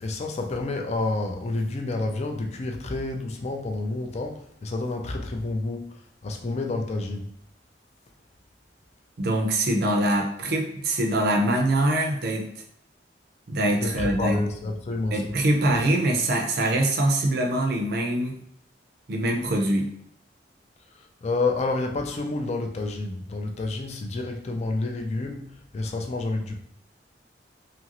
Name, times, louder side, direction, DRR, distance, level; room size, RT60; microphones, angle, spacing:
voice 1, 0.0-7.3 13.8-15.3 20.9-26.6, left 2 dB, 40° left, 3 dB, 0.4 m, -29 dB
voice 2, 9.2-12.5 13.5-14.4 15.1-18.4 19.1-19.9, right 1 dB, 60° right, 3 dB, 0.5 m, -23 dB
2.8 x 2.5 x 2.9 m, 0.69 s
head